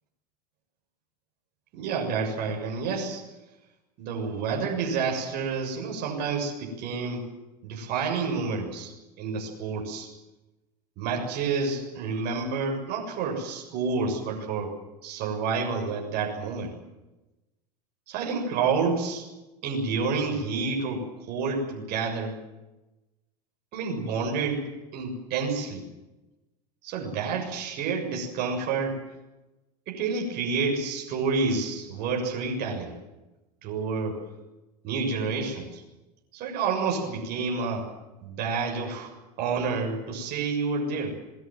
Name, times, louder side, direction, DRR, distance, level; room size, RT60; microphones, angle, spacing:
voice 1, 1.7-3.2 4.0-7.3 7.6-10.1 11.0-14.7 15.0-16.7 18.1-19.3 19.6-22.4 23.7-24.7 24.9-25.8 26.8-29.0 29.9-33.0 33.6-34.2 34.8-35.8 36.3-37.9 38.2-39.1 39.4-41.2, right 4 dB, 50° right, 1 dB, 7.0 m, -29 dB
27.0 x 20.0 x 7.7 m, 1.0 s
hypercardioid pair, 100°, 20 cm